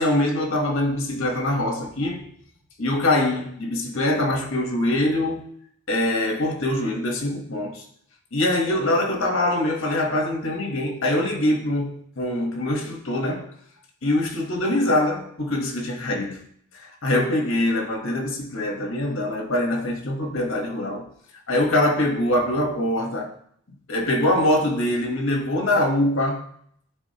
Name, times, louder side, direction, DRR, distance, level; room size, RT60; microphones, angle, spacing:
voice 1, 0.0-2.3 2.8-5.5 5.9-7.8 8.3-13.5 14.0-16.4 17.0-21.1 21.5-23.3 23.9-26.4, left 1 dB, 75° left, 1.1 m, -23 dB
9.8 x 3.5 x 2.8 m
head